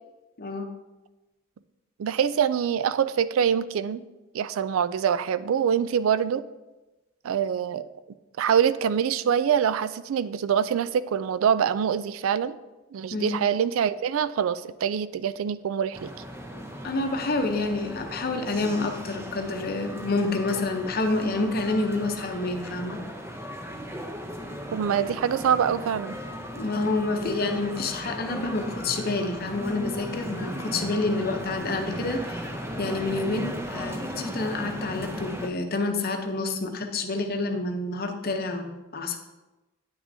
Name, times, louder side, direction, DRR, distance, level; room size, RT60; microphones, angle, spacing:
voice 1, 0.4-0.7 13.1-13.4 16.5-23.0 26.6-32.5 32.8-39.2, left 2 dB, 45° left, 4 dB, 0.7 m, -28 dB
voice 2, 2.0-4.0 4.3-6.4 7.2-7.8 8.4-12.5 12.9-16.1 24.7-26.2, right 8 dB, 80° right, 14 dB, 0.3 m, -25 dB
sound 1, 15.9-35.5, equal, 10° right, 0.6 m, -36 dB
9.6 x 6.0 x 2.7 m, 1.1 s
head